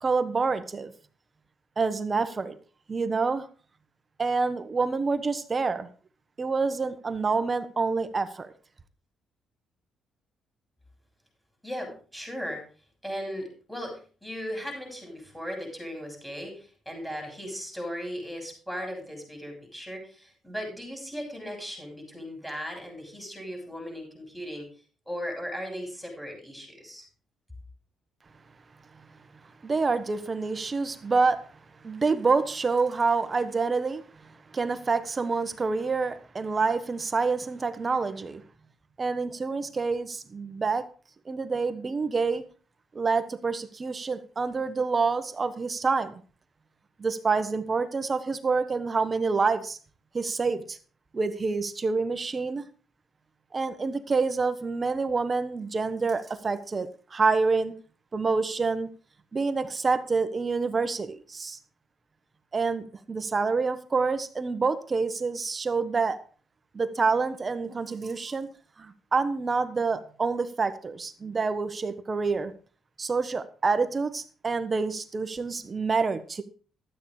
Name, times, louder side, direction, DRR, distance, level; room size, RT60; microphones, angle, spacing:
voice 1, 0.0-0.9 1.8-2.6 2.9-3.5 4.2-5.9 6.4-8.5 29.6-31.4 31.8-38.4 39.0-40.9 41.3-42.4 42.9-46.1 47.0-49.8 50.1-50.8 51.1-52.6 53.5-57.7 58.1-58.9 59.3-61.6 62.5-66.2 66.7-68.5 68.8-72.5 73.0-76.4, right 4 dB, 35° right, 1.2 m, -27 dB
voice 2, 11.6-12.6 13.0-24.7 25.1-27.0, equal, ahead, 7.2 m, -37 dB
12.5 x 8.6 x 4.9 m
cardioid pair, 90°, 0 cm